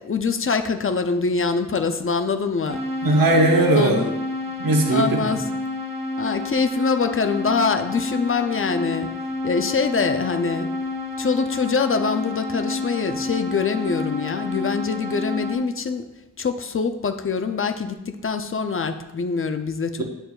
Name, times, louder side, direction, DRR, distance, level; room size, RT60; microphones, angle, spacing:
voice 1, 0.0-2.8 3.7-4.1 4.9-5.5 6.2-9.1 9.4-10.7 11.2-16.1 16.4-20.0, left 5 dB, 40° left, 8 dB, 0.4 m, -24 dB
sound 1, 2.7-15.6, left 2 dB, 20° right, 1.0 m, -29 dB
voice 2, 3.0-4.0 4.6-5.2, right 2 dB, 90° right, 1 dB, 0.9 m, -18 dB
9.1 x 4.5 x 2.3 m, 0.99 s
wide cardioid pair, 95°, 33 cm